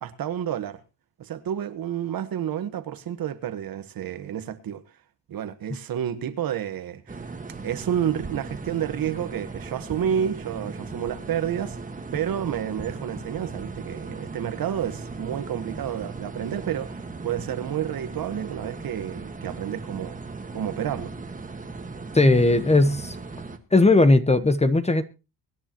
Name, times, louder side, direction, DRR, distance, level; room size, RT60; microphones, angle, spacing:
voice 1, 0.0-0.8 1.2-4.8 5.3-7.3 7.6-11.8 12.1-20.2 20.5-21.1, right 9 dB, 65° right, 1.4 m, -30 dB
sound 1, 7.1-23.6, right 3 dB, 20° right, 1.6 m, -37 dB
voice 2, 22.1-23.1 23.7-25.0, left 2 dB, 15° left, 1.1 m, -18 dB
23.5 x 10.0 x 3.0 m
cardioid pair, 100°, 38 cm